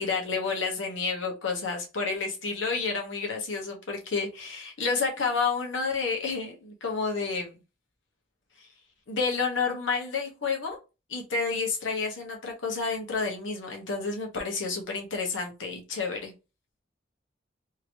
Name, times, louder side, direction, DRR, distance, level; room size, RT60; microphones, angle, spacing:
voice 1, 0.0-7.5 8.6-8.7 9.1-10.8 11.1-16.3, left 4 dB, 85° left, 1 dB, 1.0 m, -30 dB
2.9 x 2.9 x 2.6 m, 0.29 s
head